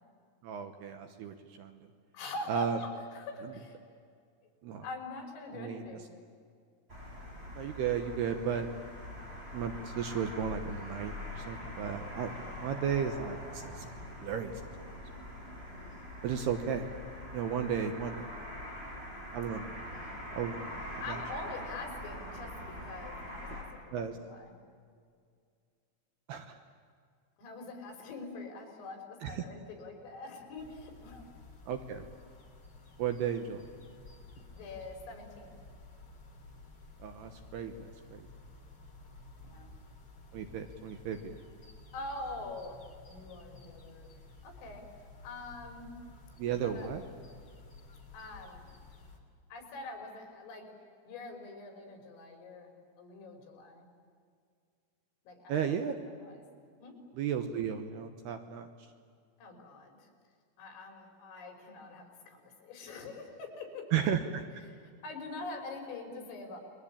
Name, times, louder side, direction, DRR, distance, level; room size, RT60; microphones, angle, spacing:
voice 1, 0.4-1.9 2.5-2.8 4.6-4.8 5.5-6.0 7.5-8.7 9.5-13.9 14.2-14.7 16.2-16.9 17.3-18.2 19.3-19.7 20.3-20.7 20.9-21.2 23.9-24.2 26.3-26.6 29.2-29.4 31.7-32.1 33.0-33.7 37.0-38.3 40.3-41.4 46.4-47.0 55.5-55.9 57.1-58.7 63.9-64.4, right 8 dB, 70° right, 6 dB, 2.6 m, -34 dB
voice 2, 2.1-3.8 4.8-6.1 21.0-24.5 27.4-31.2 34.5-35.5 39.4-39.7 41.9-42.8 43.1-44.1 44.4-44.9 45.2-46.0 46.5-46.9 48.1-48.7 49.5-50.7 51.1-53.9 55.2-55.8 56.2-56.4 56.8-57.0 59.4-60.1 60.6-63.9 64.7-66.6, left 2 dB, 85° left, 3 dB, 6.9 m, -44 dB
sound 1, 6.9-23.6, left 1 dB, 10° right, 7.4 m, -43 dB
sound 2, 30.6-49.2, left 3 dB, 25° left, 2.6 m, -53 dB
29.5 x 22.5 x 8.7 m, 2.2 s
omnidirectional pair, 5.8 m